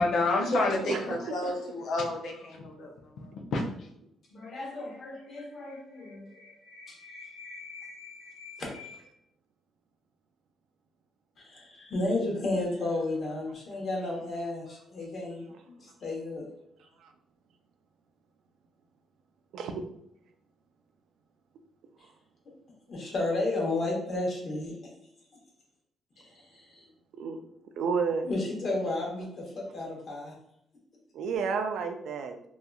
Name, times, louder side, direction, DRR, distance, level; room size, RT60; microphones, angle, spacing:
voice 1, 0.0-2.9 3.5-3.6, left 2 dB, 75° left, 1 dB, 0.5 m, -28 dB
voice 2, 1.0-1.6 1.9-2.1 2.8-2.9 4.3-9.0 11.4-16.5 22.9-24.9 26.2-26.9 28.2-30.3, left 2 dB, 50° left, -1 dB, 0.9 m, -34 dB
voice 3, 27.8-28.3 31.1-32.4, right 5 dB, 75° right, 6 dB, 0.3 m, -30 dB
2.7 x 2.4 x 2.3 m, 0.74 s
cardioid pair, 90°, 0 cm